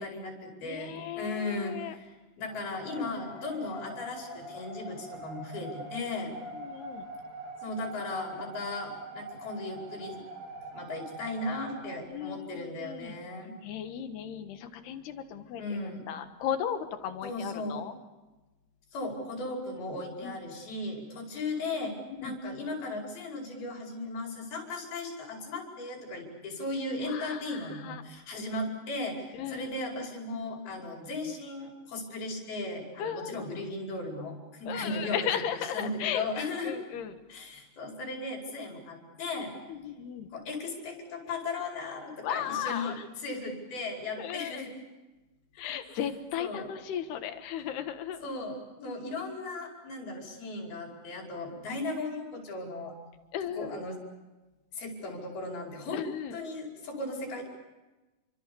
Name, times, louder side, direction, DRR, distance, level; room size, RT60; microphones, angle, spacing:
voice 1, 0.0-6.3 7.6-10.2 10.7-13.6 15.6-16.0 17.2-17.8 18.9-21.9 22.2-36.8 37.3-39.5 40.3-44.8 45.9-46.0 46.4-46.7 48.2-52.9 53.5-54.0 54.7-56.0 56.3-57.4, left 2 dB, 70° left, 1 dB, 6.9 m, -36 dB
voice 2, 0.6-2.0 6.5-7.1 12.1-13.2 13.6-17.9 20.2-20.6 22.1-22.4 27.0-28.0 29.3-29.7 33.0-33.5 34.7-37.2 39.7-40.3 42.2-43.1 44.2-44.7 45.6-48.2 53.3-53.9 55.9-56.4, left 9 dB, 85° left, 8 dB, 3.6 m, -36 dB
sound 1, 2.5-12.0, right 2 dB, 50° right, 4.8 m, -44 dB
29.0 x 25.5 x 7.0 m, 1.1 s
omnidirectional pair, 4.5 m